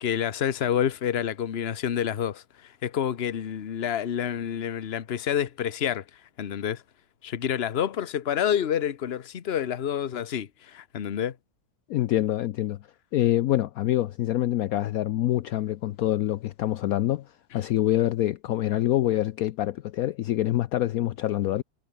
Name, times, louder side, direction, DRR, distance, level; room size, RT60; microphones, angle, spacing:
voice 1, 0.0-6.0 6.4-6.8 7.2-11.4, left 9 dB, 45° left, 1.1 m, -28 dB
voice 2, 11.9-12.8 13.1-21.6, left 13 dB, 70° left, 1.0 m, -26 dB
omnidirectional pair, 1.7 m